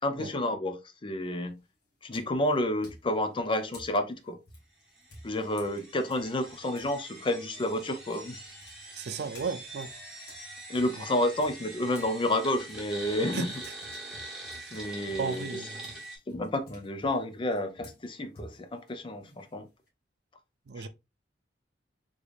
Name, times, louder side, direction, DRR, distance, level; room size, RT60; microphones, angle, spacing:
voice 1, 0.0-1.6 2.0-4.4 5.2-8.4 10.7-13.5 14.7-15.5 16.3-19.7 20.8-20.9, left 1 dB, 30° left, 0.5 m, -30 dB
sound 1, 1.2-1.6 2.1-6.9 7.3-12.1 12.5-19.9, left 1 dB, 60° left, 1.6 m, -53 dB
sound 2, 5.0-16.2, right 2 dB, 5° right, 1.4 m, -44 dB
voice 2, 8.9-9.9 13.3-13.5 14.5-14.7 15.2-16.0 20.7-20.9, right 5 dB, 65° right, 0.4 m, -35 dB
3.7 x 3.3 x 2.4 m
head